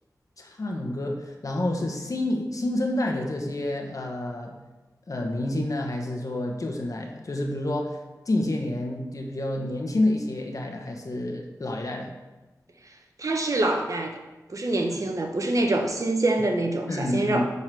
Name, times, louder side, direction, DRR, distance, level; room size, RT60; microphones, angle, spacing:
voice 1, 0.4-4.6 5.1-12.1 14.9-15.0 16.9-17.5, left 1 dB, 55° left, 2 dB, 1.4 m, -29 dB
voice 2, 13.2-14.2 14.5-17.5, right 2 dB, 55° right, 4 dB, 1.1 m, -25 dB
8.8 x 4.2 x 6.2 m, 1.1 s
cardioid pair, 50°, 7 cm